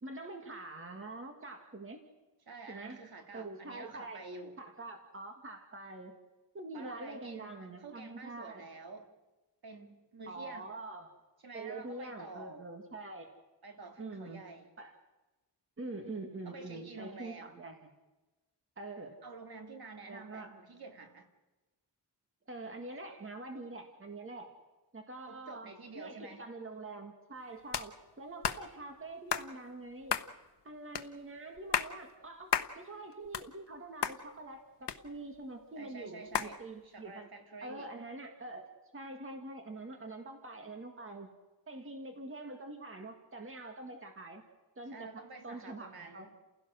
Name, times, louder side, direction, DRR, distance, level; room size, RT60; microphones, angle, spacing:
voice 1, 0.0-2.0 2.7-3.0 3.3-4.3 4.6-6.2 6.5-8.6 10.3-11.2 11.5-13.4 14.0-14.4 14.8-14.9 15.8-17.8 18.8-19.2 20.1-20.6 22.5-24.5 24.9-30.2 30.6-37.3 37.6-38.7 38.9-41.3 41.7-44.4 44.8-46.3, right 2 dB, 30° right, 4 dB, 1.9 m, -45 dB
voice 2, 2.5-4.6 6.7-9.1 9.6-10.7 11.4-12.6 13.6-14.7 16.4-17.6 19.2-21.3 25.3-26.5 35.8-37.9 44.9-46.3, right 3 dB, 60° right, 5 dB, 2.4 m, -49 dB
sound 1, 27.7-27.9 28.4-28.6 29.3-29.5 30.1-30.3 31.0-31.1 31.6-31.9 32.5-32.7 33.1-33.8 34.0-34.2 34.9-35.4 36.3-36.5, left 8 dB, 75° left, 1.0 m, -32 dB
29.5 x 16.5 x 6.4 m, 1.1 s
wide cardioid pair, 175°, 42 cm